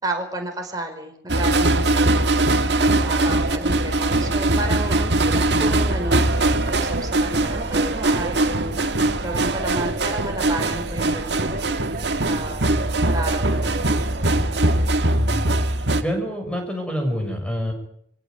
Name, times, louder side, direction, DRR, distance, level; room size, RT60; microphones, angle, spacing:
voice 1, 0.0-14.0, right 1 dB, 20° right, 3 dB, 5.0 m, -32 dB
sound 1, 1.3-16.0, right 2 dB, 70° right, 1.9 m, -21 dB
sound 2, 3.3-15.2, right 2 dB, 45° right, 0.9 m, -34 dB
voice 2, 15.1-15.5 16.0-17.7, equal, 5° left, 3 dB, 6.2 m, -26 dB
24.5 x 16.5 x 9.3 m, 0.70 s
head